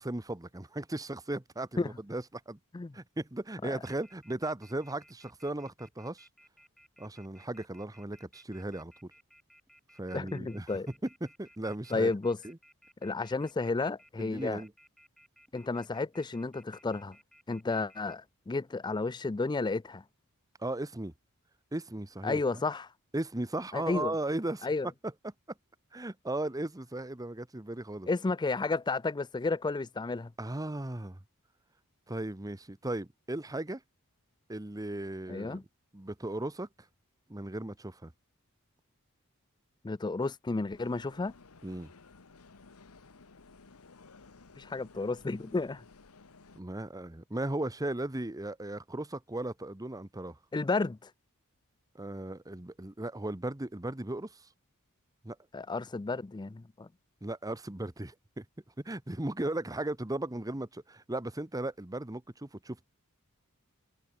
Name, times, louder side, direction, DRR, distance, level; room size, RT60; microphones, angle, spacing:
voice 1, 0.0-2.6 2.9-6.3 7.0-9.1 10.0-10.8 11.2-12.1 12.4-12.6 14.2-14.7 20.6-21.1 21.7-22.4 23.1-24.7 25.9-28.1 30.4-31.2 32.1-33.8 34.5-35.6 35.9-36.7 37.3-38.1 41.6-41.9 46.5-50.4 51.9-54.5 55.2-55.4 57.2-58.4 58.8-62.9, right 1 dB, 15° right, 1.0 m, -36 dB
Telephone, 3.8-18.1, equal, ahead, 6.7 m, -60 dB
voice 2, 10.1-10.9 11.9-12.4 13.0-14.6 15.5-17.2 17.5-20.0 22.2-22.9 23.7-24.1 24.6-24.9 28.1-30.3 35.3-35.6 39.8-41.3 44.6-45.8 50.5-51.1 55.5-56.9, left 3 dB, 20° left, 0.4 m, -32 dB
sound 1, 40.8-46.6, left 4 dB, 85° left, 1.2 m, -56 dB
head